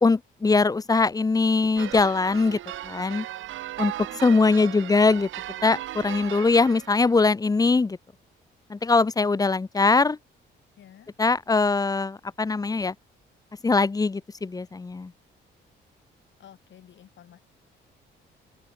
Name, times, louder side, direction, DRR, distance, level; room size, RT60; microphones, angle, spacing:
voice 1, 0.0-2.6 2.8-3.3 3.8-5.3 5.6-8.0 8.7-10.2 11.2-12.9 13.6-15.1, left 3 dB, 20° left, 0.6 m, -22 dB
sound 1, 1.8-7.1, right 13 dB, 80° right, 2.3 m, -37 dB
voice 2, 10.8-11.1 16.4-17.4, left 10 dB, 70° left, 8.0 m, -51 dB
open air
cardioid pair, 90°, 20 cm